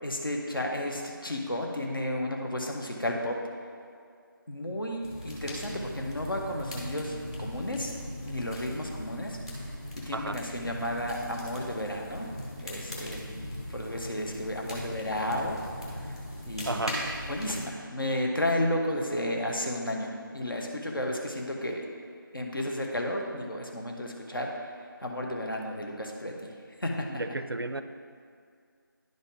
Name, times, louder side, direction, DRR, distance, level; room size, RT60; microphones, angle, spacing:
voice 1, 0.0-3.4 4.5-7.9 8.2-9.4 10.1-12.3 12.6-15.6 16.1-16.2 16.5-16.9 17.3-21.8 22.3-24.7 25.0-26.5 26.8-27.2, left 1 dB, 70° left, 0 dB, 1.2 m, -32 dB
sound 1, 5.0-17.6, equal, 15° left, 0.6 m, -39 dB
voice 2, 16.7-17.0 27.2-27.8, right 2 dB, 80° right, 10 dB, 0.4 m, -32 dB
10.5 x 4.0 x 3.7 m, 2.2 s
figure-of-eight pair, 165°, 12 cm